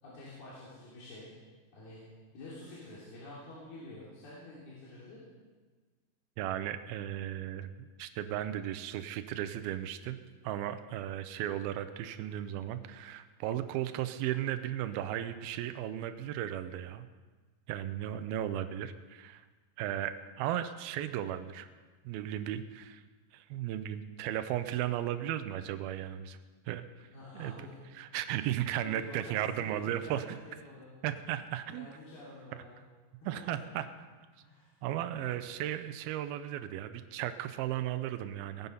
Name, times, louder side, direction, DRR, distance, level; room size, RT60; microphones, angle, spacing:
voice 1, 0.0-1.3 1.7-2.0 2.3-5.2 27.1-27.8 28.3-30.9 31.7-32.8 33.2-33.6 34.4-35.3, left 1 dB, 85° left, -8 dB, 5.1 m, -49 dB
voice 2, 6.4-17.1 17.7-19.5 19.8-21.7 22.1-23.0 23.3-26.4 26.7-27.1 27.3-27.6 28.0-30.4 31.0-31.9 33.3-34.1 34.8-38.7, right 11 dB, 85° right, 10 dB, 2.5 m, -35 dB
19.0 x 9.5 x 5.7 m, 1.4 s
omnidirectional pair, 4.3 m